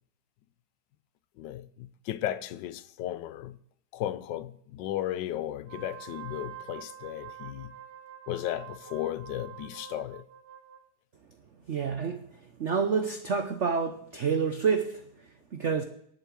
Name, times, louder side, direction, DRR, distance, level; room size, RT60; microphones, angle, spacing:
voice 1, 1.4-3.6 3.9-7.7 8.3-10.2, left 12 dB, 70° left, 1.1 m, -35 dB
Wind instrument woodwind instrument, 5.6-10.8, right 11 dB, 35° right, 0.9 m, -46 dB
voice 2, 11.7-12.3 12.6-15.8, right 6 dB, 75° right, 0.6 m, -28 dB
11.0 x 7.7 x 7.6 m
omnidirectional pair, 2.3 m